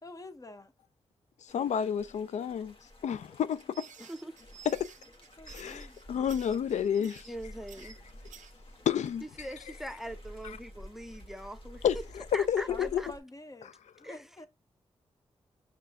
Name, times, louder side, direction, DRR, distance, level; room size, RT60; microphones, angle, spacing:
voice 1, 0.0-0.7 5.4-6.4 12.7-13.7 14.0-14.5, left 2 dB, 30° left, 0.9 m, -48 dB
voice 2, 1.5-2.7 3.0-3.9 4.7-4.9 5.5-7.3 8.9-9.2 10.4-10.6 11.8-13.0, left 8 dB, 70° left, 0.4 m, -30 dB
sound 1, 1.5-13.2, equal, 45° left, 1.3 m, -51 dB
sound 2, 3.5-8.5, right 8 dB, 85° right, 0.5 m, -53 dB
voice 3, 4.0-4.3 7.2-8.0 9.2-11.8 12.3-13.1 14.0-14.2, right 1 dB, 5° right, 0.7 m, -42 dB
5.4 x 2.6 x 3.5 m
supercardioid pair, 45°, 12 cm